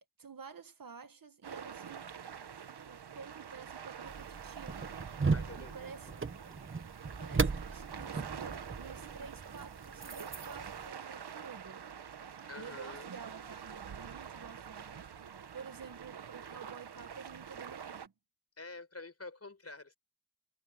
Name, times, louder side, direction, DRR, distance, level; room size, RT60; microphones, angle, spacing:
voice 1, 0.2-5.1 5.6-6.1 7.0-11.9 12.6-15.0 15.5-18.1, right 5 dB, 60° right, 1.8 m, -50 dB
sound 1, 1.4-18.1, right 7 dB, 85° right, 1.4 m, -46 dB
sound 2, 4.1-10.9, right 4 dB, 30° right, 1.1 m, -37 dB
voice 2, 5.3-5.9 12.5-13.1 18.6-20.0, left 3 dB, 40° left, 6.1 m, -47 dB
wide cardioid pair, 80°, 39 cm